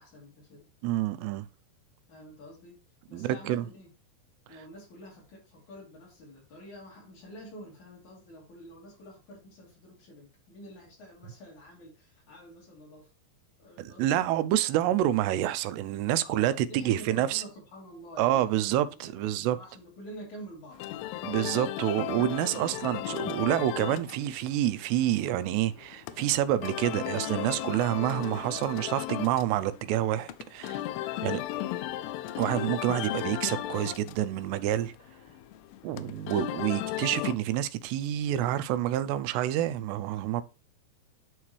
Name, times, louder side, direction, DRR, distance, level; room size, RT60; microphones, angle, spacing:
voice 1, 0.0-0.7 2.1-2.8 3.1-3.9 4.5-13.1 13.6-14.3 16.2-20.8 31.0-31.5, equal, 50° left, 3.7 m, -48 dB
voice 2, 0.8-1.5 3.1-3.6 13.8-17.4 18.2-19.6 21.2-30.8 31.2-31.4 32.4-34.9 35.8-40.4, right 12 dB, 90° right, 2.7 m, -28 dB
sound 1, 20.7-37.3, left 14 dB, 85° left, 2.7 m, -36 dB
11.0 x 3.7 x 3.1 m
omnidirectional pair, 4.8 m